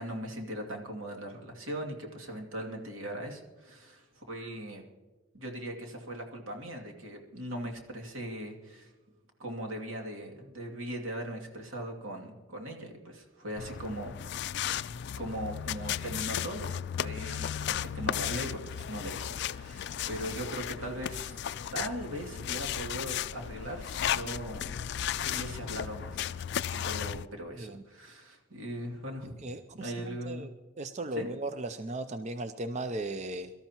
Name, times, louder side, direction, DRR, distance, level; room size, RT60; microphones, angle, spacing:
voice 1, 0.0-4.8 5.3-8.9 9.4-14.1 14.8-21.4 21.7-24.8 25.2-26.2 26.7-29.5 29.7-30.5 31.1-31.3, right 1 dB, 80° right, 1 dB, 2.5 m, -39 dB
sound 1, 13.6-27.3, left 9 dB, 55° left, 0.3 m, -35 dB
voice 2, 29.4-30.5 30.8-33.5, right 2 dB, 35° right, 9 dB, 0.5 m, -37 dB
23.5 x 13.0 x 3.0 m, 1.2 s
head